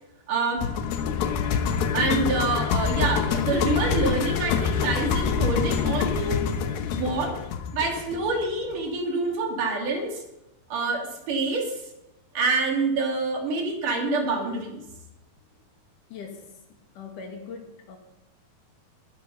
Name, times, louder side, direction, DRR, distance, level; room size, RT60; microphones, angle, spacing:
voice 1, 0.3-0.7 1.9-6.5 6.9-7.4 7.7-10.2 10.7-11.8 12.4-14.8, right 3 dB, 60° right, 2 dB, 3.8 m, -26 dB
sound 1, 0.6-8.7, left 7 dB, 80° left, 3.0 m, -26 dB
voice 2, 16.1-16.5 16.9-18.0, left 5 dB, 60° left, 3 dB, 3.2 m, -40 dB
19.0 x 11.0 x 5.5 m, 0.95 s
omnidirectional pair, 4.3 m